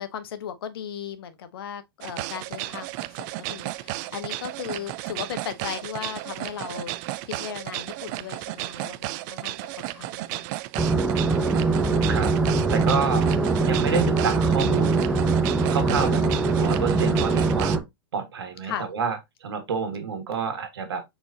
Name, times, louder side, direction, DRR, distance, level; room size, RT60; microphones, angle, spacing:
voice 1, 0.0-6.9 7.3-10.5 13.8-14.0 15.9-16.5 18.6-18.9, left 8 dB, 75° left, 1.0 m, -37 dB
sound 1, 2.0-17.8, right 16 dB, 45° right, 0.4 m, -34 dB
sound 2, 10.8-17.8, right 3 dB, 10° right, 0.7 m, -22 dB
voice 2, 12.7-13.3 13.6-15.0 15.7-16.2 16.5-17.8 18.1-21.0, right 6 dB, 85° right, 1.5 m, -28 dB
4.5 x 4.0 x 2.6 m
hypercardioid pair, 120°, 13 cm